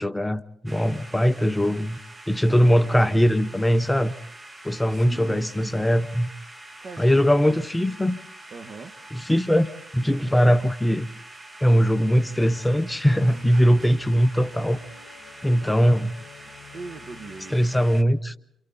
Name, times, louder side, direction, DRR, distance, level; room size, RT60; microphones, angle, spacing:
voice 1, 0.0-2.0 2.3-4.1 4.6-6.3 7.0-8.2 9.1-11.1 11.6-14.8 15.4-16.1 17.5-18.3, equal, 10° left, 0.8 m, -21 dB
sound 1, 0.7-18.0, right 1 dB, 20° right, 1.7 m, -45 dB
voice 2, 4.9-5.7 6.8-7.6 8.5-8.9 13.2-13.9 16.7-17.8, right 4 dB, 50° right, 1.7 m, -41 dB
sound 2, 12.3-18.1, left 7 dB, 45° left, 2.4 m, -50 dB
29.0 x 27.5 x 4.2 m
cardioid pair, 90°, 0 cm